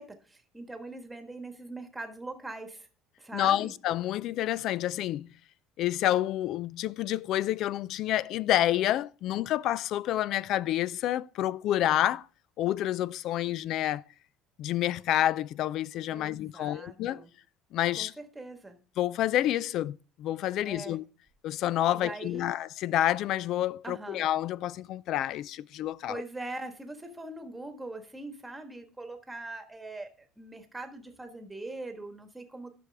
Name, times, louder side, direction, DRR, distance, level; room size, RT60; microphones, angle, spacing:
voice 1, 0.0-2.9 3.2-3.7 16.1-17.3 18.0-18.8 20.6-21.0 21.9-22.5 23.8-24.2 26.1-32.7, right 2 dB, 10° right, 1.4 m, -42 dB
voice 2, 3.3-5.3 5.8-12.3 12.6-14.0 14.6-17.2 17.7-18.1 19.0-21.0 21.4-26.2, left 13 dB, 60° left, 0.3 m, -28 dB
11.0 x 6.1 x 3.4 m
cardioid pair, 130°, 0 cm